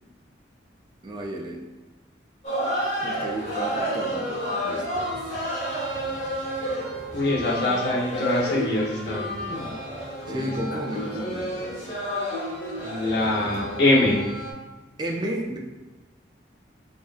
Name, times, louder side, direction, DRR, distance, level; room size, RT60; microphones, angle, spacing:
voice 1, 1.0-1.6 3.0-5.1 10.3-11.6 15.0-15.6, equal, 25° right, 1 dB, 0.4 m, -32 dB
sound 1, 2.4-14.5, equal, 35° left, 1.4 m, -30 dB
voice 2, 7.1-9.7 10.3-10.5 10.7-10.8 12.8-14.2, left 2 dB, 55° left, -3 dB, 0.8 m, -24 dB
5.1 x 2.7 x 2.4 m, 1.2 s
head